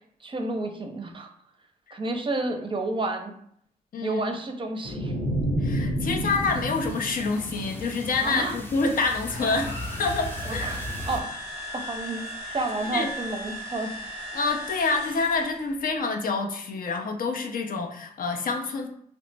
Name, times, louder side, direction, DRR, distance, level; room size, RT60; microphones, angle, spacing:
voice 1, 0.2-1.3 1.9-3.3 4.0-5.1 8.2-8.6 10.4-11.3 11.7-12.3 12.5-14.0, right 2 dB, 35° right, 4 dB, 0.5 m, -30 dB
sound 1, 4.8-8.1, equal, 45° left, 0.9 m, -29 dB
voice 2, 5.6-10.7 12.5-12.6 12.9-13.1 14.3-18.9, left 4 dB, 65° left, 4 dB, 0.5 m, -27 dB
sound 2, 6.0-11.2, left 1 dB, 15° left, 0.6 m, -37 dB
sound 3, 9.3-15.6, equal, 90° left, 1.2 m, -37 dB
2.9 x 2.0 x 3.2 m, 0.67 s
cardioid pair, 65°, 16 cm